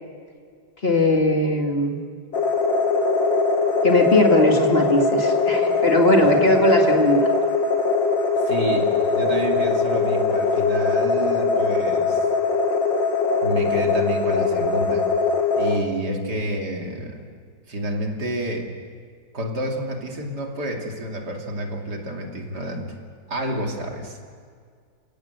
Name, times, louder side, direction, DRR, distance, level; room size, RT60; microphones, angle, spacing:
voice 1, 0.8-2.0 3.8-7.3, left 1 dB, 30° left, 2 dB, 2.4 m, -19 dB
sound 1, 2.3-15.8, left 4 dB, 85° left, 2.7 m, -21 dB
voice 2, 6.2-6.6 8.4-12.3 13.4-15.0 15.6-17.2 17.7-18.7 19.3-22.9 23.3-24.2, right 1 dB, 60° right, 1 dB, 3.2 m, -29 dB
30.0 x 17.0 x 8.0 m, 2.1 s
omnidirectional pair, 2.0 m